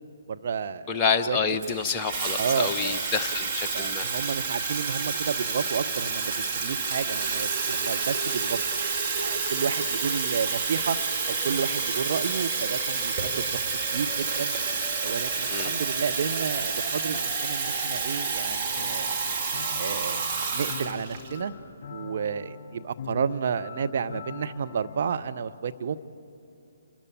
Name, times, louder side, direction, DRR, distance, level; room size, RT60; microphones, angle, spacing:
voice 1, 0.3-1.4 2.4-3.1 3.7-8.6 9.2-11.0 11.3-13.6 13.9-14.6 15.0-19.2 19.8-21.5 21.9-26.0, right 6 dB, 45° right, 9 dB, 0.8 m, -31 dB
voice 2, 0.9-4.1 15.5-15.8, left 5 dB, 20° left, 4 dB, 0.9 m, -28 dB
Water tap faucet / Fill (with liquid), 1.6-21.4, right 4 dB, 25° right, 2.1 m, -29 dB
sound 1, 18.7-25.1, left 6 dB, 40° left, 4.6 m, -42 dB
28.0 x 13.5 x 8.7 m, 2.5 s
figure-of-eight pair, 135°, 0 cm